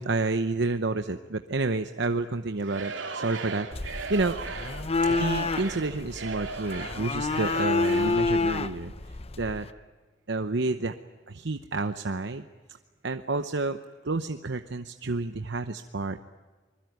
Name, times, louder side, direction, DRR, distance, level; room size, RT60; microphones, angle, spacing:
voice 1, 0.0-3.7 4.1-4.4 5.1-8.9 9.4-9.7 10.3-10.9 11.3-12.4 13.0-13.8 14.0-16.2, right 3 dB, 65° right, 8 dB, 0.9 m, -29 dB
Singing / Crowd, 2.6-8.3, right 4 dB, 80° right, 3.0 m, -37 dB
sound 1, 3.7-9.7, left 3 dB, 35° left, 0.8 m, -29 dB
25.5 x 21.5 x 9.4 m, 1.3 s
head